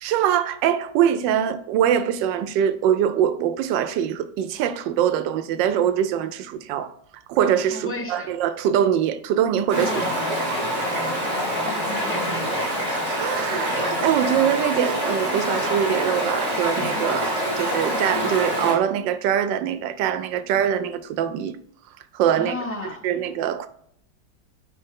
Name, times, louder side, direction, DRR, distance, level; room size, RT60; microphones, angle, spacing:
voice 1, 0.0-6.9 7.3-10.0 11.6-11.8 13.2-21.6 22.1-22.5 23.0-23.7, right 9 dB, 85° right, 1.3 m, -23 dB
voice 2, 7.7-8.3 9.9-10.1 11.7-12.9 22.4-23.1, left 2 dB, 15° left, 0.5 m, -34 dB
Stream, 9.7-18.7, equal, 40° right, 3.0 m, -25 dB
8.8 x 3.4 x 3.6 m
omnidirectional pair, 1.9 m